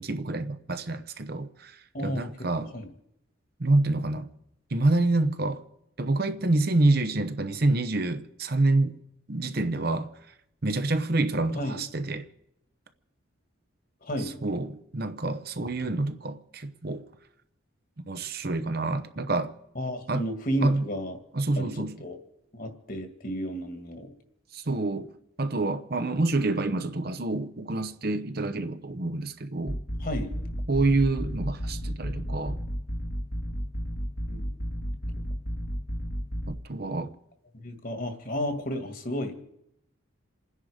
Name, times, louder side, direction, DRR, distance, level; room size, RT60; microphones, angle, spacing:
voice 1, 0.0-2.7 3.6-4.3 4.7-5.6 6.0-9.0 9.3-10.1 10.6-12.3 14.2-17.0 18.1-19.5 20.1-20.2 20.6-20.8 21.3-22.0 24.5-25.1 25.4-29.8 30.7-32.6 36.5-37.1, right 2 dB, 45° right, 0.8 m, -27 dB
voice 2, 1.9-2.3 2.7-2.9 11.6-11.8 14.0-14.4 19.8-21.2 21.6-21.7 22.0-22.2 22.5-24.1 30.0-30.3 34.3-34.4 37.5-39.4, equal, 45° left, 2.0 m, -32 dB
sound 1, 29.7-36.5, equal, 65° left, 2.0 m, -33 dB
28.5 x 10.0 x 5.0 m
head